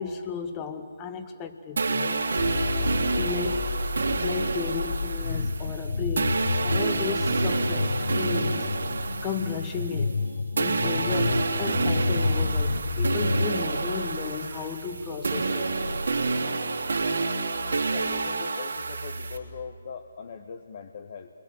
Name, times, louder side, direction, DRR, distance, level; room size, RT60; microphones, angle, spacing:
voice 1, 0.0-2.2 3.1-3.7 4.2-8.7 9.2-10.1 10.6-16.6, left 6 dB, 20° left, 7 dB, 1.6 m, -34 dB
sound 1, 1.8-10.3 10.6-19.4, right 3 dB, 60° right, 3.3 m, -28 dB
sound 2, 2.4-13.5, left 3 dB, 60° left, 0.9 m, -29 dB
voice 2, 17.9-21.3, left 6 dB, 40° left, 7 dB, 1.4 m, -40 dB
29.5 x 22.5 x 7.7 m, 2.2 s
figure-of-eight pair, 145°, 0 cm